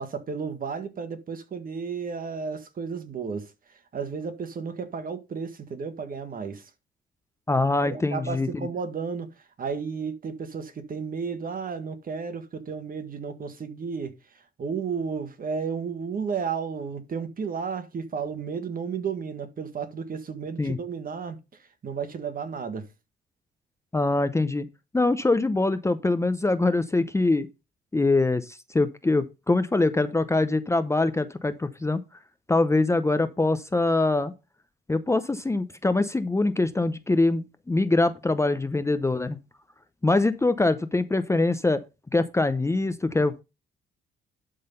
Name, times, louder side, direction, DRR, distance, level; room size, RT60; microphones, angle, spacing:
voice 1, 0.0-6.7 7.8-22.9, right 5 dB, 45° right, 1.6 m, -33 dB
voice 2, 7.5-8.7 20.6-20.8 23.9-24.7 24.9-27.5 27.9-32.0 32.5-34.3 34.9-39.4 40.0-41.8 42.1-43.4, left 2 dB, 15° left, 0.7 m, -23 dB
11.5 x 3.9 x 5.4 m
cardioid pair, 90°, 20 cm